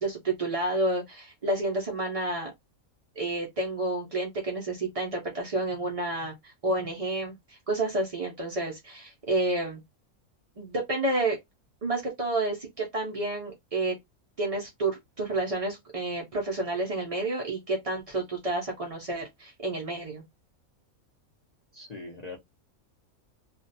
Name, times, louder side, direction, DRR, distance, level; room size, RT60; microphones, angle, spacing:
voice 1, 0.0-2.5 3.2-9.8 10.6-11.4 11.8-14.0 14.4-20.2, right 2 dB, 60° right, 0.3 m, -30 dB
voice 2, 21.7-22.4, left 3 dB, 65° left, 0.4 m, -41 dB
2.4 x 2.1 x 2.6 m
omnidirectional pair, 1.5 m